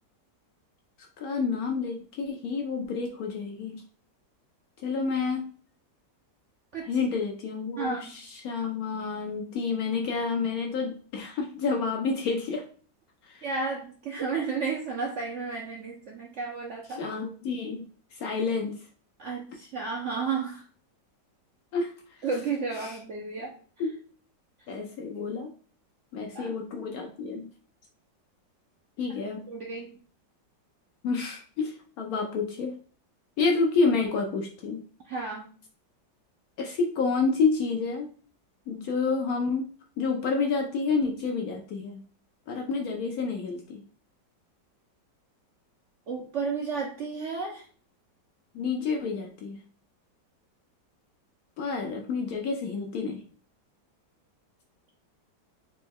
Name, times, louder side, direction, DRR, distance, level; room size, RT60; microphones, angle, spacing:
voice 1, 1.2-3.8 4.8-5.5 6.9-12.6 13.3-13.4 17.0-17.9 18.1-18.8 21.7-21.9 22.8-23.0 23.8-24.0 24.7-25.5 26.1-27.5 29.0-29.4 31.0-32.8 33.4-34.8 36.6-38.1 38.7-39.7 40.0-42.0 42.5-43.8 48.5-49.6 51.6-53.2, left 4 dB, 70° left, 2 dB, 0.9 m, -29 dB
voice 2, 7.8-8.1 13.4-17.0 19.2-20.6 22.2-23.5 26.3-26.5 29.5-29.9 35.0-35.4 46.1-47.6, right 4 dB, 65° right, 0 dB, 0.7 m, -32 dB
4.1 x 2.2 x 3.4 m, 0.42 s
omnidirectional pair, 1.9 m